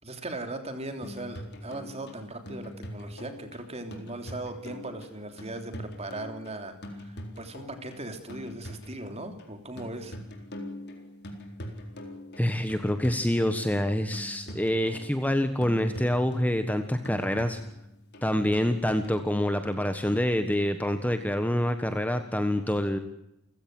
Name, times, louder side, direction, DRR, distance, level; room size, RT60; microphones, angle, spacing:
voice 1, 0.0-10.1, right 2 dB, 30° right, 7 dB, 3.3 m, -39 dB
sound 1, 1.0-19.2, equal, 50° left, 4.2 m, -43 dB
voice 2, 12.4-17.6 18.2-23.0, left 1 dB, 5° left, 8 dB, 1.4 m, -26 dB
29.5 x 16.0 x 7.8 m, 0.86 s
head